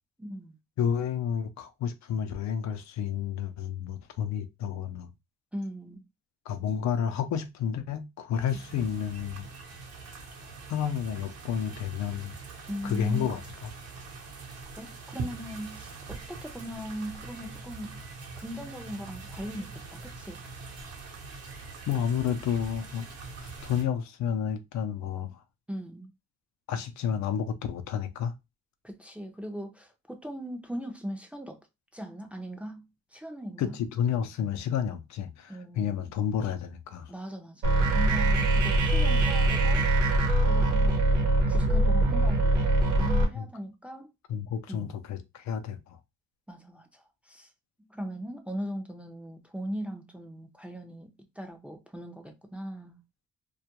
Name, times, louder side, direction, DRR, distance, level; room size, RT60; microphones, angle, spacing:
voice 1, 0.2-0.6 5.5-6.0 12.7-13.3 14.8-18.0 18.4-20.4 25.7-26.1 28.8-31.6 31.9-33.7 35.5-36.1 37.1-39.8 40.5-41.0 41.5-44.1 44.7-44.9 46.5-47.5 47.8-53.0, equal, 5° right, 0.5 m, -39 dB
voice 2, 0.8-5.1 6.5-9.5 10.7-12.3 12.8-13.4 21.9-23.1 23.4-25.4 26.7-28.3 33.6-37.1 43.4-43.5 44.3-46.0, left 8 dB, 65° left, 0.5 m, -30 dB
sound 1, 8.5-23.8, right 4 dB, 55° right, 0.8 m, -43 dB
sound 2, 37.6-43.2, right 2 dB, 90° right, 0.9 m, -23 dB
2.3 x 2.1 x 2.8 m
cardioid pair, 90°, 30 cm